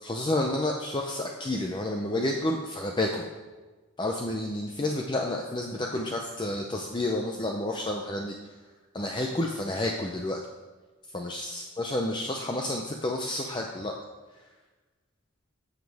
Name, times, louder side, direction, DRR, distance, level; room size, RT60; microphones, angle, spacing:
voice 1, 0.0-3.3 4.0-8.4 8.9-10.4 11.1-13.9, left 1 dB, 20° left, 1 dB, 0.6 m, -30 dB
14.0 x 7.3 x 3.5 m, 1.3 s
head